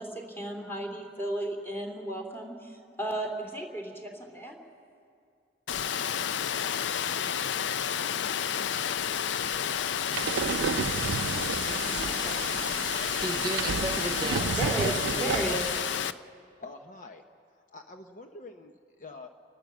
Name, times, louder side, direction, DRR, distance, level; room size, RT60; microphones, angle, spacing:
voice 1, 0.0-4.6 11.3-12.9 14.6-15.6, right 1 dB, 15° left, 2 dB, 2.6 m, -35 dB
Water, 5.7-16.1, left 8 dB, 75° left, 0.5 m, -30 dB
sound 1, 10.1-16.0, right 6 dB, 85° right, 0.4 m, -32 dB
voice 2, 13.1-15.6, right 2 dB, 25° right, 7 dB, 0.4 m, -35 dB
voice 3, 16.6-17.2 17.6-19.3, left 3 dB, 45° left, 5 dB, 0.8 m, -46 dB
29.5 x 12.0 x 7.5 m, 2.3 s
head